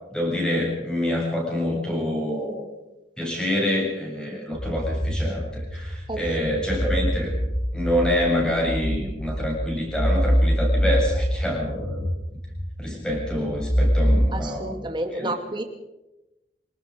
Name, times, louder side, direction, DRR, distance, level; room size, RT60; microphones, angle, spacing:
voice 1, 0.1-2.7 3.2-7.3 7.7-12.1 12.8-14.7 15.1-15.3, left 1 dB, 5° left, -1 dB, 7.7 m, -26 dB
sound 1, 4.5-14.2, equal, 30° left, 7.6 m, -25 dB
voice 2, 6.1-6.5 14.3-15.6, right 1 dB, 25° right, 5 dB, 2.4 m, -31 dB
26.5 x 18.5 x 5.2 m, 0.98 s
head